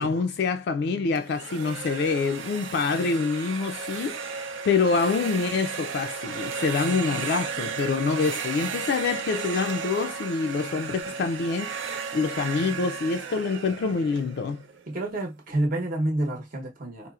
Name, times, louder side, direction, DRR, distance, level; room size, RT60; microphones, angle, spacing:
voice 1, 0.0-14.6, left 4 dB, 60° left, 0.3 m, -26 dB
sound 1, 1.2-15.0, right 6 dB, 75° right, 0.6 m, -34 dB
voice 2, 14.9-17.1, right 1 dB, 50° right, 0.8 m, -29 dB
4.2 x 2.0 x 2.3 m
head